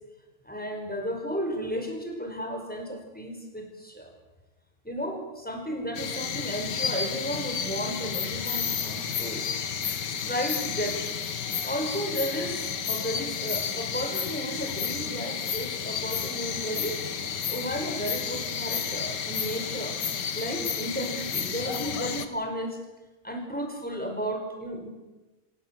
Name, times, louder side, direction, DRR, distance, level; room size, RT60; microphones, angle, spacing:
voice 1, 0.4-4.1 4.8-9.5 10.1-11.1 11.6-17.0 17.5-20.0 20.3-22.8 23.2-24.9, equal, 5° left, 3 dB, 5.2 m, -33 dB
sound 1, 5.9-22.3, left 7 dB, 85° left, 2.0 m, -31 dB
27.0 x 17.5 x 7.7 m, 1.1 s
omnidirectional pair, 1.8 m